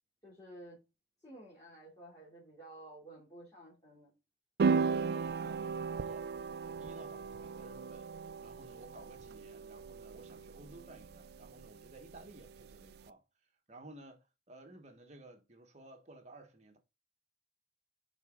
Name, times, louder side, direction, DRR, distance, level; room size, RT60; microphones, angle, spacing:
voice 1, 0.2-0.8 1.2-4.1, right 1 dB, 20° left, 3.0 m, -52 dB
voice 2, 4.6-6.3 6.6-8.1 8.4-13.2 13.7-16.8, right 2 dB, 40° right, 1.3 m, -54 dB
sound 1, 4.6-13.0, right 5 dB, 60° right, 0.3 m, -37 dB
6.6 x 5.0 x 3.8 m
head